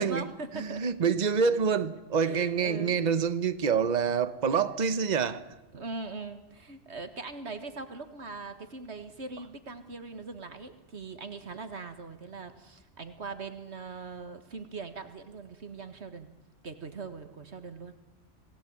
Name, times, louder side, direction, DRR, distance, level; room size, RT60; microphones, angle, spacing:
voice 1, 0.0-1.1 2.2-3.0 5.7-16.3 16.6-18.0, right 3 dB, 70° right, 2.0 m, -41 dB
voice 2, 0.5-5.5, right 6 dB, 40° right, 1.1 m, -27 dB
27.0 x 18.0 x 8.9 m
omnidirectional pair, 1.2 m